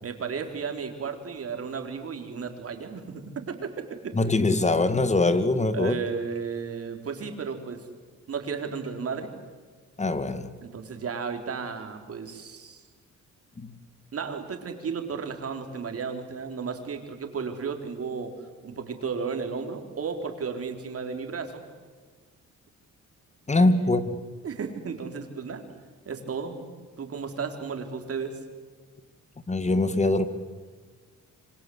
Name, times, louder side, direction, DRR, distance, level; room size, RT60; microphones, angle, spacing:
voice 1, 0.0-3.7 4.0-4.1 5.7-7.8 8.3-9.3 10.6-12.8 14.1-18.3 18.6-21.6 23.6-24.0 24.4-25.7 26.1-26.7 27.0-28.4, right 5 dB, 50° right, 5 dB, 4.3 m, -34 dB
voice 2, 4.1-6.0 10.0-10.5 13.6-13.7 23.5-24.2 29.5-30.3, left 2 dB, 25° left, 12 dB, 2.2 m, -23 dB
27.0 x 25.5 x 8.1 m, 1.5 s
cardioid pair, 90°, 30 cm